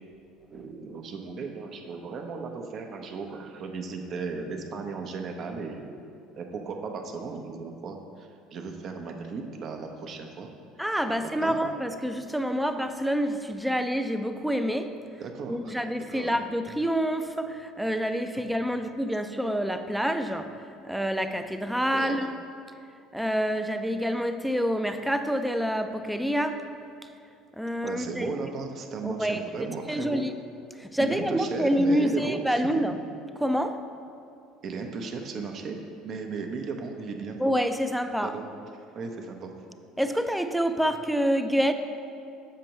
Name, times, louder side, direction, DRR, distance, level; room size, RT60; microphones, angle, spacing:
voice 1, 0.5-6.0 6.4-10.5 11.2-11.6 15.2-15.7 16.1-16.3 21.9-22.1 27.8-30.2 31.0-32.6 34.6-35.8 36.0-37.4 38.2-38.4 38.9-39.5, right 4 dB, 50° right, 4 dB, 0.7 m, -36 dB
voice 2, 10.8-15.0 15.5-22.3 23.1-26.6 27.5-28.3 29.0-29.5 29.9-30.3 30.8-33.0 33.4-33.8 37.4-38.4 40.0-41.7, equal, ahead, 8 dB, 0.4 m, -27 dB
7.4 x 5.2 x 2.9 m, 2.5 s
hypercardioid pair, 70°, 0 cm